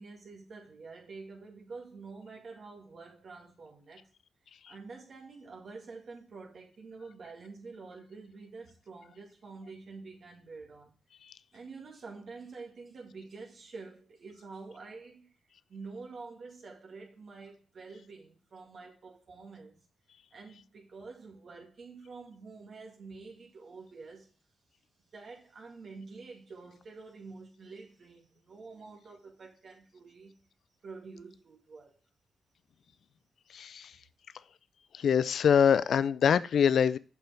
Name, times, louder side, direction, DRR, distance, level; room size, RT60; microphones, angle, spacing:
voice 1, 0.0-4.1 4.7-10.9 11.5-15.3 15.7-19.8 20.3-24.3 25.1-30.4 30.8-32.0, right 4 dB, 60° right, 2.1 m, -48 dB
voice 2, 33.5-33.9 35.0-37.0, left 7 dB, 70° left, 0.4 m, -24 dB
7.7 x 5.6 x 3.4 m
supercardioid pair, 50°, 0 cm